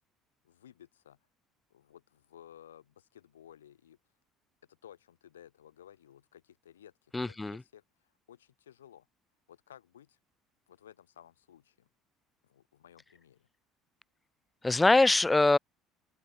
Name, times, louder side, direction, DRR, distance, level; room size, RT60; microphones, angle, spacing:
voice 1, 0.4-1.2 1.7-4.0 4.7-9.1 9.5-10.2 10.7-11.9 12.4-13.5, left 10 dB, 80° left, 4.2 m, -56 dB
voice 2, 7.1-7.6 14.6-15.6, left 2 dB, 15° left, 0.8 m, -23 dB
open air
figure-of-eight pair, 60°, 0 cm